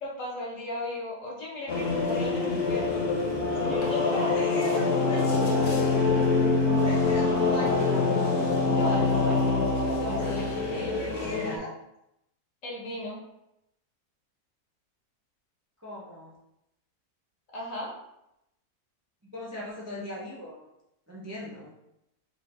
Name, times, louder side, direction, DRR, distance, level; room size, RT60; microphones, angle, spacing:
voice 1, 0.0-3.1 3.4-5.5 8.6-11.0 12.6-13.2 17.5-17.9, left 1 dB, 60° left, -3 dB, 1.6 m, -36 dB
sound 1, 1.7-11.6, left 3 dB, 80° left, 1.3 m, -25 dB
voice 2, 4.1-5.2 5.4-6.2 6.7-8.1 11.0-11.7 15.8-16.3 19.3-20.7 21.1-21.7, left 1 dB, 15° right, -5 dB, 0.5 m, -39 dB
5.1 x 2.7 x 3.7 m, 0.84 s
omnidirectional pair, 1.6 m